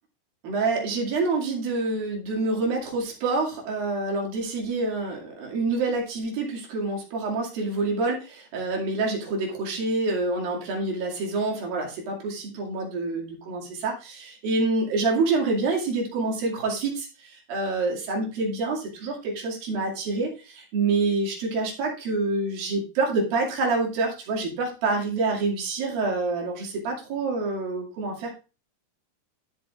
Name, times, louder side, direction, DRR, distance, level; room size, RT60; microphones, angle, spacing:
voice 1, 0.4-28.3, right 3 dB, 65° right, -1 dB, 4.0 m, -27 dB
12.5 x 7.6 x 2.4 m, 0.32 s
omnidirectional pair, 4.5 m